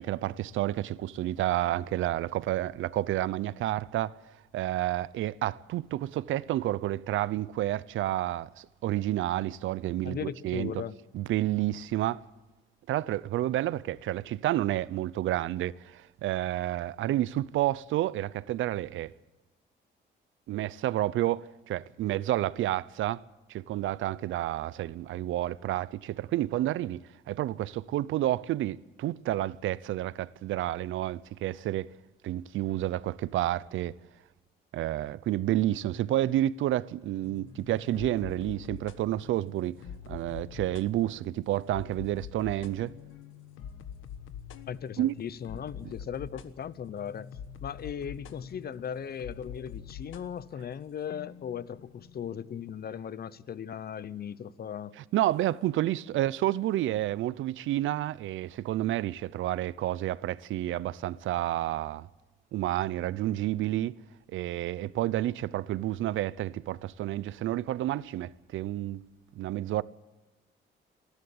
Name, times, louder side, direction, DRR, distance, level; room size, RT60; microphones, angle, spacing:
voice 1, 0.0-4.2 4.5-10.7 11.1-12.2 12.9-19.1 20.5-23.2 23.5-31.9 32.2-33.9 34.7-39.7 40.1-42.9 45.0-45.1 55.0-62.1 62.5-64.0 64.3-69.0 69.4-69.8, right 14 dB, 80° right, 0.6 m, -30 dB
voice 2, 10.0-11.0 44.7-47.3 47.6-55.0, left 8 dB, 50° left, 0.9 m, -38 dB
sound 1, 37.2-53.5, left 8 dB, 85° left, 1.4 m, -46 dB
29.0 x 11.5 x 8.6 m
cardioid pair, 90°, 20 cm